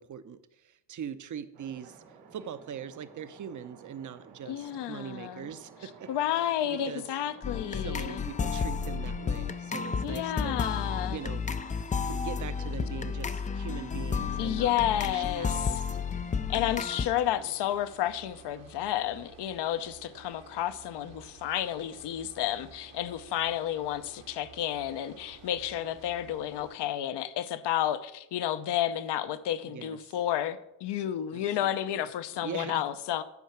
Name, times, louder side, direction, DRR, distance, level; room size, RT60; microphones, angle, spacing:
voice 1, 0.0-2.0 2.3-6.1 6.6-7.1 7.7-10.6 11.1-11.4 12.0-16.0 17.3-17.5 29.6-30.2 31.3-32.8, right 8 dB, 40° right, 13 dB, 0.8 m, -42 dB
sound 1, 1.5-10.9, right 5 dB, 85° right, 2.6 m, -53 dB
voice 2, 4.5-5.5 6.1-8.2 10.0-11.2 14.4-15.6 16.5-33.2, left 11 dB, 60° left, 13 dB, 0.9 m, -31 dB
sound 2, 7.4-17.1, left 6 dB, 20° left, 0.4 m, -32 dB
sound 3, 10.7-26.7, right 6 dB, 70° right, 1.6 m, -53 dB
11.0 x 4.6 x 5.8 m, 0.83 s
supercardioid pair, 75°, 47 cm